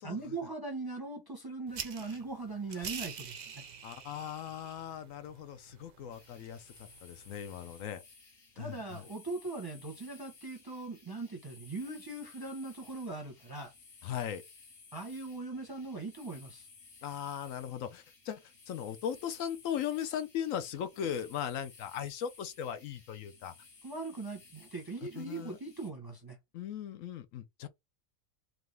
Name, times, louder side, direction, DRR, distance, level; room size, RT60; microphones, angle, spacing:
voice 1, 0.0-3.6 8.5-13.7 14.9-16.7 23.8-26.4, right 3 dB, 20° right, 0.7 m, -40 dB
sound 1, 1.7-7.9, right 7 dB, 65° right, 0.4 m, -47 dB
voice 2, 3.8-6.7 7.0-8.0 8.6-9.0 14.0-14.4 17.0-23.5 25.2-25.6 26.5-27.7, left 9 dB, 75° left, 1.0 m, -38 dB
sound 2, 6.1-25.9, left 4 dB, 45° left, 1.3 m, -57 dB
3.8 x 3.0 x 3.3 m
omnidirectional pair, 1.4 m